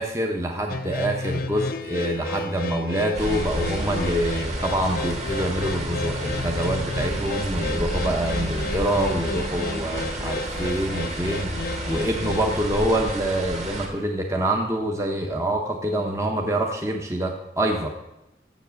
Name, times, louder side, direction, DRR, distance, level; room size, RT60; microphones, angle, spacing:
voice 1, 0.0-11.5 11.9-17.9, right 1 dB, 15° right, 2 dB, 0.7 m, -26 dB
sound 1, 0.7-13.2, left 2 dB, 50° left, 0.5 m, -32 dB
sound 2, 3.1-13.9, right 1 dB, 35° right, 1.7 m, -31 dB
7.2 x 7.2 x 6.8 m, 0.90 s
head